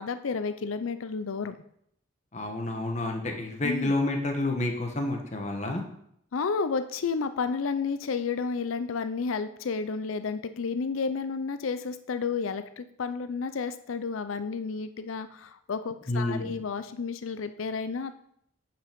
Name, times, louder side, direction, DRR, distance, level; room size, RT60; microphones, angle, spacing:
voice 1, 0.0-1.6 3.6-3.9 6.3-18.1, left 5 dB, 90° left, 11 dB, 0.5 m, -31 dB
voice 2, 2.3-5.8 16.1-16.5, left 2 dB, 35° left, 3 dB, 1.3 m, -29 dB
9.4 x 5.9 x 5.2 m, 0.72 s
head